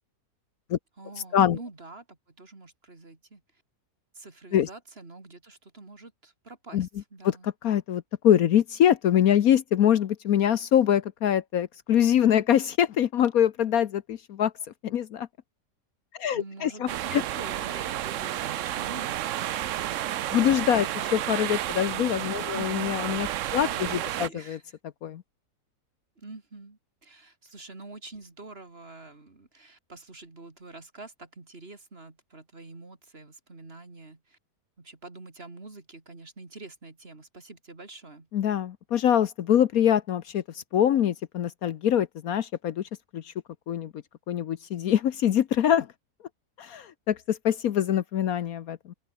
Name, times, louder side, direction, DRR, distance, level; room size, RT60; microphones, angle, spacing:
voice 1, 1.0-3.4 4.1-7.5 16.3-19.3 21.9-22.0 22.5-23.0 23.6-24.8 26.2-34.4 34.8-38.3, right 3 dB, 35° right, 3.1 m, -46 dB
voice 2, 7.2-14.5 14.8-15.3 16.2-17.2 20.3-24.6 25.0-25.2 38.3-40.4 40.7-42.8 43.1-43.3 43.7-43.9 44.3-45.9 46.6-48.9, left 10 dB, 65° left, 1.2 m, -24 dB
sound 1, 16.9-24.3, right 12 dB, 65° right, 0.8 m, -31 dB
open air
omnidirectional pair, 1.7 m